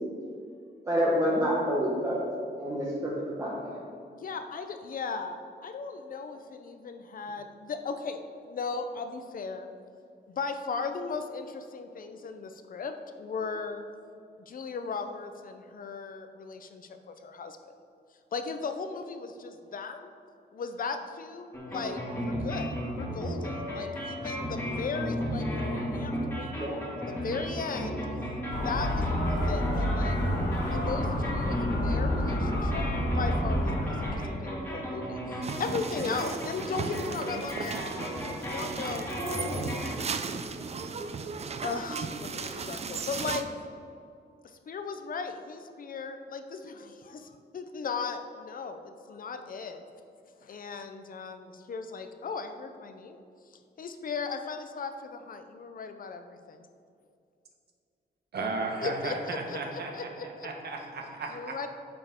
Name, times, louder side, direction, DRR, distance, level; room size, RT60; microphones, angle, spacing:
voice 1, 0.9-2.2 2.6-3.8 26.5-26.8, equal, 15° right, -6 dB, 1.0 m, -28 dB
voice 2, 4.1-9.7 10.3-13.8 14.5-17.7 18.3-20.1 20.5-28.1 28.6-30.2 30.7-32.9 33.1-39.9 41.6-43.5 44.4-49.8 50.4-53.2 53.5-56.7 58.8-60.5 61.3-61.7, left 4 dB, 50° left, 8 dB, 0.6 m, -37 dB
sound 1, 21.5-39.9, equal, 10° left, 1.8 m, -34 dB
Motor vehicle (road) / Siren, 28.5-34.1, left 1 dB, 75° left, 1.5 m, -29 dB
sound 2, 35.4-43.4, right 5 dB, 35° right, 0.4 m, -36 dB
voice 3, 58.3-59.9 60.2-61.5, right 3 dB, 65° right, 1 dB, 1.2 m, -34 dB
9.4 x 7.0 x 3.7 m, 2.4 s
wide cardioid pair, 170°, 18 cm